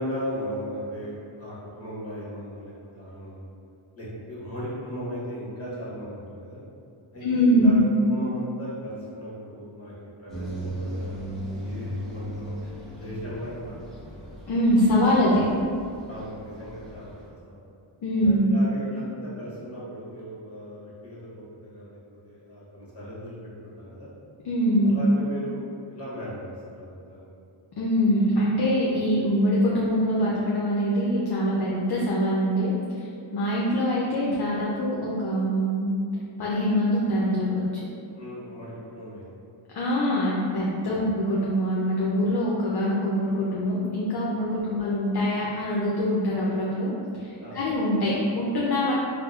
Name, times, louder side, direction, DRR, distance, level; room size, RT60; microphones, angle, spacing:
voice 1, 0.0-3.5 4.0-6.6 7.1-7.8 8.1-9.9 10.2-11.2 11.6-14.3 14.8-15.2 16.1-17.1 17.4-17.6 18.2-22.0 22.2-24.1 24.8-26.4 26.8-27.3 38.1-39.2 47.4-47.6, equal, 30° left, -7 dB, 1.0 m, -37 dB
voice 2, 7.2-7.8 14.5-15.4 18.0-18.5 24.4-25.0 27.8-35.9 36.4-37.6 39.7-48.9, equal, 50° left, -5 dB, 0.5 m, -24 dB
sound 1, 10.3-17.3, equal, ahead, 0.6 m, -37 dB
4.4 x 2.0 x 2.3 m, 2.4 s
wide cardioid pair, 145°, 49 cm